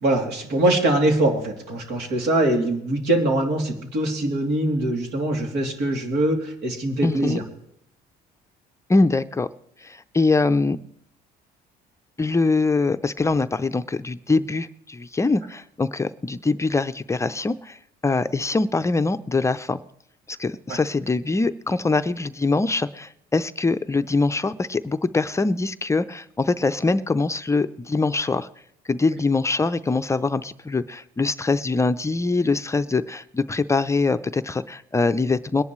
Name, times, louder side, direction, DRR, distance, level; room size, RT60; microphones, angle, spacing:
voice 1, 0.0-7.4 20.7-20.8, right 1 dB, 80° right, 3 dB, 2.9 m, -23 dB
voice 2, 7.0-7.4 8.9-9.5 9.8-10.8 12.2-19.8 20.3-28.5 28.9-35.6, left 3 dB, 15° left, 10 dB, 0.5 m, -23 dB
21.5 x 11.0 x 3.1 m, 0.73 s
cardioid pair, 110°, 17 cm